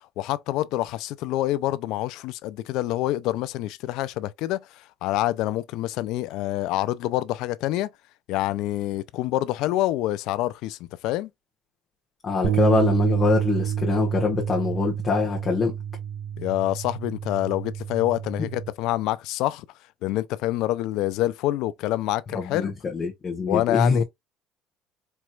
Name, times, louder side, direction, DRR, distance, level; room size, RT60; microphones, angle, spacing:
voice 1, 0.2-7.9 8.3-10.8 11.0-11.3 16.4-19.7 20.0-22.7 23.5-24.0, left 15 dB, 70° left, 0.4 m, -26 dB
voice 2, 12.2-15.8 18.4-18.5 22.3-24.0, left 4 dB, 25° left, 1.2 m, -24 dB
sound 1, 12.4-18.7, right 9 dB, 75° right, 0.8 m, -28 dB
4.5 x 3.0 x 2.3 m
cardioid pair, 125°, 0 cm